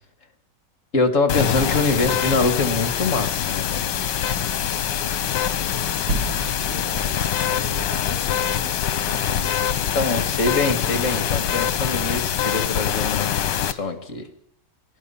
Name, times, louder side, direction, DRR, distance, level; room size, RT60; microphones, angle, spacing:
voice 1, 0.9-3.8 10.0-14.3, left 3 dB, 45° left, 8 dB, 2.2 m, -24 dB
sound 1, 1.3-13.7, left 9 dB, 75° left, 1.6 m, -24 dB
voice 2, 4.6-10.1, right 3 dB, 35° right, -2 dB, 4.7 m, -41 dB
sound 2, 6.1-10.3, right 1 dB, 90° right, 2.2 m, -34 dB
26.0 x 17.5 x 5.7 m, 0.80 s
omnidirectional pair, 1.9 m